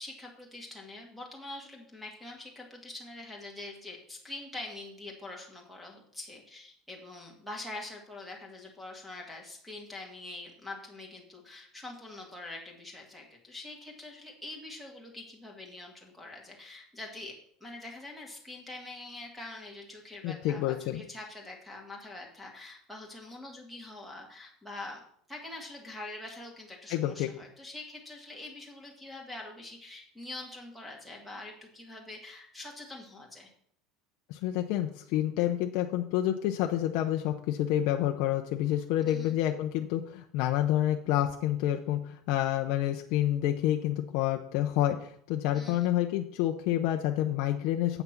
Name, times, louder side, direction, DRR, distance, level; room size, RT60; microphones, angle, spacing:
voice 1, 0.0-25.0 25.3-33.5 39.0-39.3 45.5-45.9, left 2 dB, ahead, -3 dB, 1.7 m, -44 dB
voice 2, 20.2-21.0 26.9-27.3 34.3-48.0, left 12 dB, 55° left, 4 dB, 0.6 m, -28 dB
7.9 x 5.9 x 5.9 m, 0.64 s
cardioid pair, 175°, 0 cm